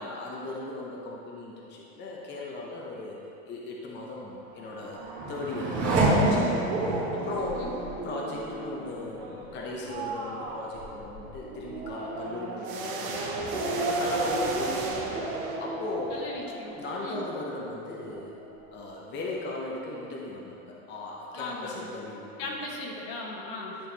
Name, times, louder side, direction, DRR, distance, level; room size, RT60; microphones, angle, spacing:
voice 1, 0.0-3.2 3.5-5.0 5.3-6.7 7.1-7.7 8.0-15.0 15.6-16.3 16.7-18.4 18.7-22.5, left 2 dB, 25° left, -3 dB, 0.8 m, -37 dB
Race car auto racing / Accelerating revving vroom, 4.4-17.7 18.1-18.8, right 2 dB, 35° right, 1.6 m, -31 dB
sound 1, 12.6-16.0, right 4 dB, 75° right, 1.2 m, -37 dB
voice 2, 16.1-17.2 21.3-21.9 22.4-23.8, left 2 dB, 70° left, -2 dB, 1.6 m, -38 dB
11.0 x 4.7 x 3.4 m, 2.8 s
supercardioid pair, 135°, 42 cm